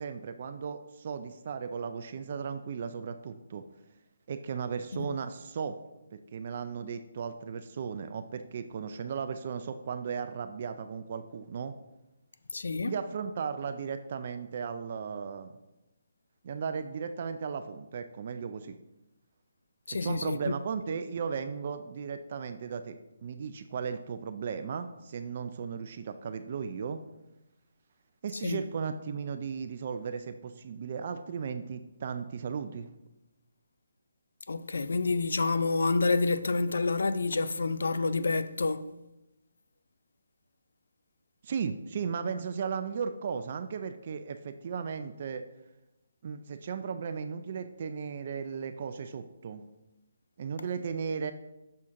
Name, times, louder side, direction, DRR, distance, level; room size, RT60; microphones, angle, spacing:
voice 1, 0.0-3.6 4.3-5.8 6.1-11.7 12.8-15.6 16.4-18.7 20.0-27.0 28.2-32.9 41.4-45.4 46.2-49.6 50.4-51.3, right 6 dB, 45° right, 0.3 m, -36 dB
voice 2, 12.5-12.9 19.9-20.4 28.4-28.7 34.5-38.9, left 3 dB, 75° left, 0.4 m, -28 dB
6.3 x 4.3 x 3.6 m
hypercardioid pair, 160°, 0 cm